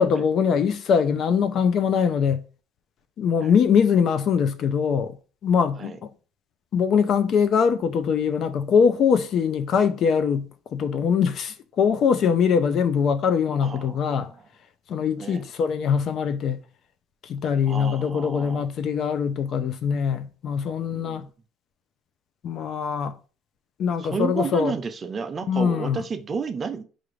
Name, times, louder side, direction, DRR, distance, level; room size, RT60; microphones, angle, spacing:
voice 1, 0.0-2.4 3.2-5.2 5.4-6.1 6.7-14.3 14.9-16.6 17.2-21.3 22.4-23.2 23.8-24.7 25.5-26.0, left 6 dB, 45° left, 0.4 m, -22 dB
voice 2, 13.6-14.3 15.2-15.4 17.7-18.6 20.9-21.3 24.0-26.8, right 5 dB, 25° right, 0.4 m, -31 dB
4.9 x 2.5 x 3.1 m
cardioid pair, 135°, 0 cm